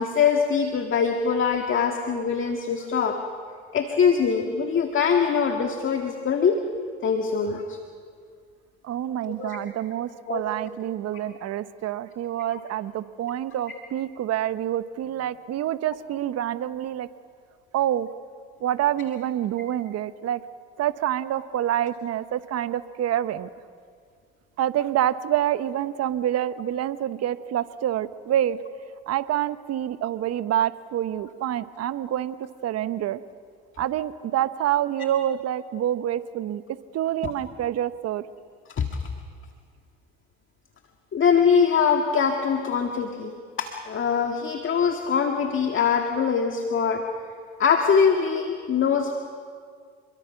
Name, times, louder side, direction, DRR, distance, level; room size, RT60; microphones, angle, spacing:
voice 1, 0.0-3.2 3.7-6.6 7.0-7.8 9.3-9.6 10.3-10.4 12.5-12.6 37.2-37.3 38.8-39.1 41.1-47.0 47.6-49.1, left 6 dB, 40° left, 4 dB, 2.0 m, -23 dB
voice 2, 8.8-17.1 17.7-18.1 18.6-20.4 20.8-23.5 24.6-28.6 29.1-32.4 32.6-33.2 33.8-36.6 36.9-38.2, right 11 dB, 50° right, 13 dB, 1.1 m, -27 dB
28.5 x 22.5 x 6.0 m, 2.1 s
hypercardioid pair, 75°, 32 cm